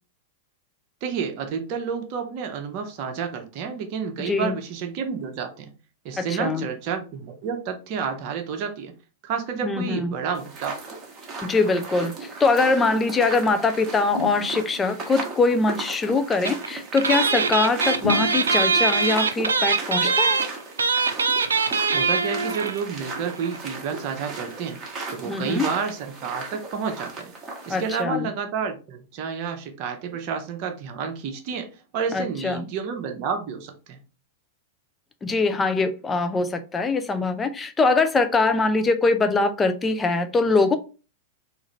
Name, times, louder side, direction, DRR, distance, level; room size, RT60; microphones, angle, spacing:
voice 1, 1.0-5.7 6.0-8.9 9.2-10.8 21.9-24.8 25.1-27.3 27.6-34.0, right 6 dB, 45° right, 0.7 m, -30 dB
voice 2, 4.2-4.5 6.2-6.7 9.6-10.2 11.4-20.4 25.3-25.7 27.7-28.3 32.1-32.7 35.2-40.8, left 3 dB, 15° left, 0.5 m, -23 dB
sound 1, 10.3-28.0, right 3 dB, 25° right, 1.1 m, -36 dB
sound 2, 14.1-15.0 18.0-18.9, left 4 dB, 70° left, 0.8 m, -31 dB
sound 3, 16.4-16.7 16.9-22.8 23.1-23.2 23.4-23.6, right 4 dB, 75° right, 0.4 m, -22 dB
3.7 x 2.6 x 3.0 m
figure-of-eight pair, 95°, 0 cm